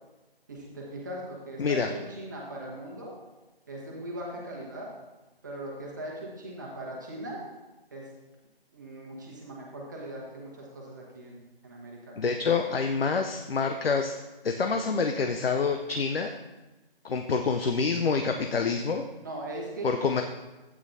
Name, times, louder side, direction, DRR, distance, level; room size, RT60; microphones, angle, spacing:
voice 1, 0.5-3.1 3.7-4.9 5.4-7.4 7.9-8.1 8.7-12.2 19.2-20.2, right 1 dB, 20° right, -3 dB, 1.2 m, -39 dB
voice 2, 1.6-1.9 12.2-14.2 14.4-16.3 17.0-19.0 19.8-20.2, left 5 dB, 70° left, 5 dB, 0.7 m, -27 dB
12.0 x 8.7 x 2.7 m, 1.1 s
figure-of-eight pair, 175°, 30 cm